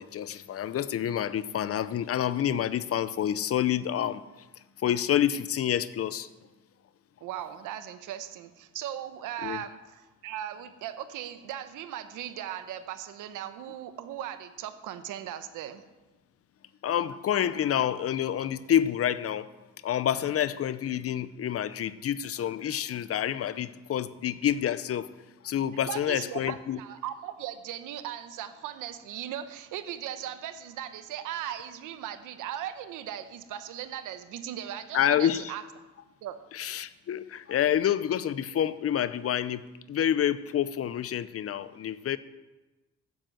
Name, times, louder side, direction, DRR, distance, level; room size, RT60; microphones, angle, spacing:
voice 1, 0.0-4.3 4.8-6.3 9.4-9.6 16.8-19.5 19.8-25.1 25.4-26.8 34.9-35.5 36.5-42.2, left 10 dB, 50° left, 0.6 m, -28 dB
voice 2, 7.2-15.8 25.9-35.6 36.2-36.4, right 11 dB, 90° right, 1.0 m, -38 dB
8.9 x 7.7 x 7.7 m
cardioid pair, 90°, 30 cm